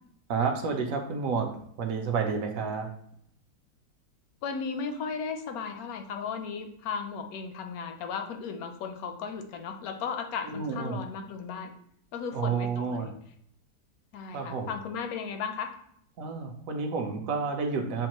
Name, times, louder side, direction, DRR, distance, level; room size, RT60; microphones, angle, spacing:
voice 1, 0.3-2.9 10.5-11.0 12.3-13.1 14.3-14.7 16.2-18.1, right 5 dB, 65° right, 4 dB, 0.9 m, -30 dB
voice 2, 4.4-11.7 12.1-13.1 14.1-15.7, left 6 dB, 70° left, 6 dB, 0.9 m, -35 dB
7.1 x 2.4 x 2.9 m, 0.67 s
omnidirectional pair, 1.8 m